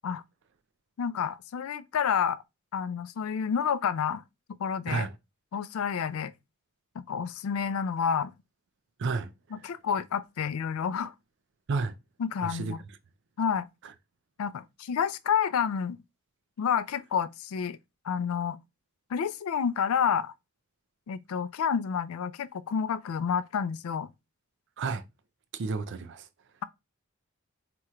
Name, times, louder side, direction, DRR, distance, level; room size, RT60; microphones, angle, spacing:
voice 1, 1.0-2.4 2.7-4.2 4.6-5.1 5.5-6.3 7.1-8.3 9.5-11.1 12.2-12.8 13.4-13.7 14.4-16.0 16.6-17.8 18.0-18.6 19.1-20.3 21.1-24.1, left 7 dB, 90° left, 0.4 m, -29 dB
voice 2, 9.0-9.3 11.7-11.9 12.4-12.7 24.8-25.0 25.5-26.3, right 4 dB, 60° right, 0.5 m, -31 dB
2.9 x 2.4 x 4.3 m
head